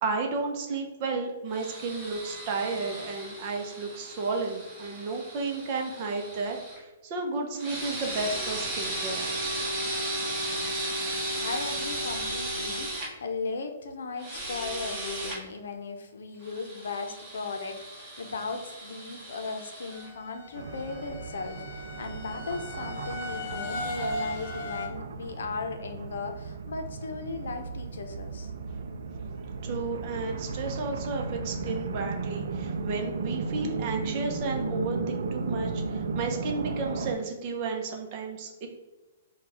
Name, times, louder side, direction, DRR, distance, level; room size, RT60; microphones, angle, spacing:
voice 1, 0.0-9.4 29.6-38.7, right 3 dB, 30° right, 2 dB, 0.7 m, -33 dB
sound 1, 1.5-6.8 7.6-13.1 14.2-15.4 16.4-20.1, right 1 dB, 10° right, 1.1 m, -35 dB
voice 2, 11.4-28.5, left 4 dB, 80° left, 5 dB, 0.7 m, -37 dB
sound 2, 19.9-24.9, left 1 dB, 40° left, 0.6 m, -38 dB
sound 3, 20.6-37.1, right 4 dB, 80° right, 0.4 m, -35 dB
5.9 x 2.3 x 3.4 m, 1.1 s
hypercardioid pair, 170°, 0 cm